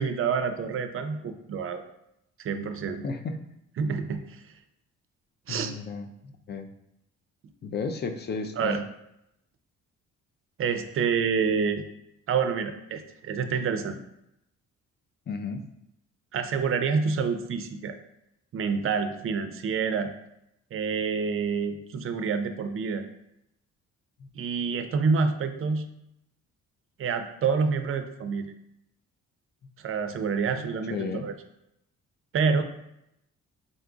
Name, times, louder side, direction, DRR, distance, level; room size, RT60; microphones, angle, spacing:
voice 1, 0.0-1.8 2.4-3.0 3.8-4.4 5.5-5.7 8.6-8.8 10.6-11.8 12.3-13.9 16.3-18.0 18.5-20.1 20.7-23.1 24.3-25.9 27.0-28.5 29.8-31.3 32.3-32.6, right 5 dB, 45° right, 8 dB, 0.5 m, -27 dB
voice 2, 3.0-3.4 5.5-6.7 7.6-8.8 15.3-15.6 30.9-31.3, left 4 dB, 35° left, 7 dB, 0.4 m, -33 dB
3.9 x 2.3 x 3.8 m, 0.81 s
cardioid pair, 90°, 30 cm